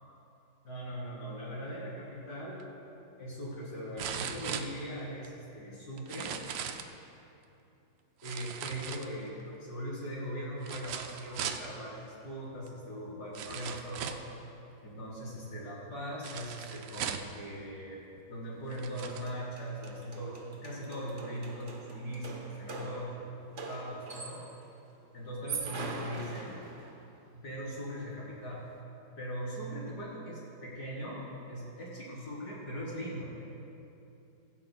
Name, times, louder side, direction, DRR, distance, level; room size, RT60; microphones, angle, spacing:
voice 1, 0.6-2.6 3.2-6.4 8.2-14.1 14.8-18.0 18.3-24.4 25.1-26.6 27.3-28.6 29.2-31.2 31.5-33.4, equal, 60° left, -6 dB, 4.1 m, -40 dB
sound 1, 2.6-2.7 4.0-5.3 6.0-6.9 8.2-9.4 10.6-11.7 12.7-12.8 13.3-14.3 16.2-17.4 18.2-18.3 18.7-19.3 19.9-20.0, right 8 dB, 85° right, 1.4 m, -39 dB
sound 2, 18.7-18.8 19.0-24.6 25.3-27.1, right 3 dB, 45° right, 1.2 m, -42 dB
16.0 x 16.0 x 2.3 m, 2.8 s
omnidirectional pair, 2.0 m